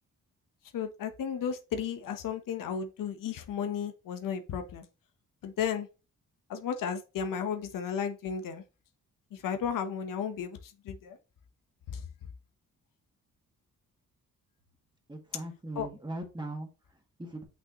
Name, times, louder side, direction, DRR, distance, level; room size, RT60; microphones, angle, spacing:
voice 1, 0.7-4.8 5.4-5.9 6.5-8.6 9.3-11.2 11.9-12.0 15.8-15.9, left 7 dB, 90° left, 1.0 m, -34 dB
voice 2, 15.1-17.4, right 2 dB, 15° right, 1.9 m, -40 dB
6.0 x 6.0 x 3.0 m
cardioid pair, 110°, 32 cm